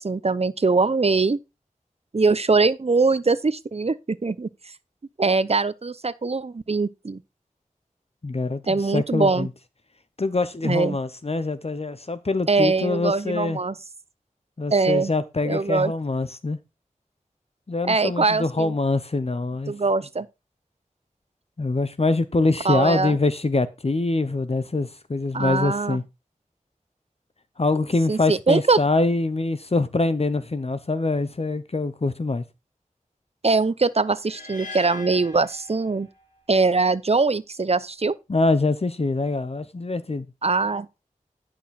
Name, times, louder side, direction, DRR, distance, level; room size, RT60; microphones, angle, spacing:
voice 1, 0.0-1.4 2.1-4.5 5.2-7.2 8.7-9.5 10.6-11.0 12.5-13.8 14.7-15.1 15.4-15.9 17.8-18.7 19.7-20.3 22.6-23.2 25.3-26.0 28.1-28.8 33.4-36.1 36.5-38.1 40.4-40.9, right 3 dB, 50° right, 0.6 m, -22 dB
voice 2, 8.2-9.5 10.2-13.6 14.6-16.6 17.7-19.7 21.6-26.0 27.6-32.4 38.3-40.3, left 3 dB, 50° left, 0.8 m, -24 dB
sound 1, 34.2-36.4, left 3 dB, 80° left, 3.3 m, -41 dB
10.5 x 6.0 x 4.2 m
wide cardioid pair, 60°, 14 cm